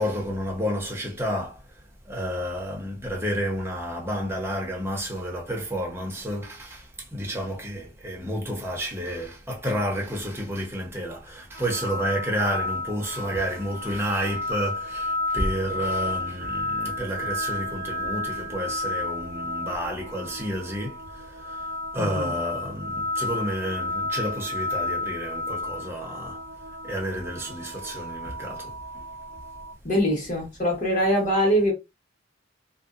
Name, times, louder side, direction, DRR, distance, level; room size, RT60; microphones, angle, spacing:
voice 1, 0.0-1.6 2.1-6.8 7.1-20.9 21.5-21.6 21.9-26.4 26.8-28.7, equal, 15° right, 0.7 m, -30 dB
sound 1, 11.5-29.7, left 2 dB, 55° right, 0.5 m, -32 dB
voice 2, 22.0-22.3 29.8-31.7, equal, 45° left, 1.3 m, -23 dB
2.6 x 2.1 x 2.4 m
head